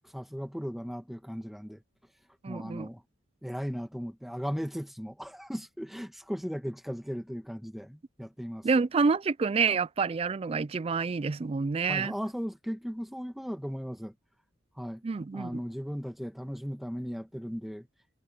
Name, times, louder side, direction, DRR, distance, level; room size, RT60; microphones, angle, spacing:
voice 1, 0.1-1.8 2.5-3.0 3.4-8.7 11.9-14.1 14.8-15.0 15.3-17.9, equal, ahead, 1.7 m, -37 dB
voice 2, 2.4-2.9 8.6-12.1 15.0-15.5, right 4 dB, 30° right, 0.3 m, -28 dB
head